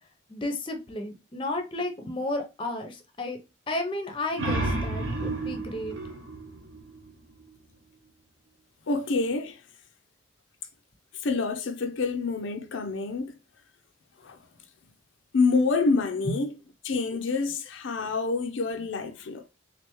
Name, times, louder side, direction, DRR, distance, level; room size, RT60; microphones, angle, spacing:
voice 1, 0.3-3.4 3.7-6.0 16.3-16.4, left 2 dB, 25° left, 0.7 m, -32 dB
sound 1, 4.1-7.5, right 2 dB, 90° right, 1.2 m, -32 dB
voice 2, 8.9-9.6 11.1-13.4 14.2-14.4 15.3-16.5 16.8-19.5, left 4 dB, 70° left, 0.5 m, -27 dB
3.6 x 3.4 x 3.0 m
head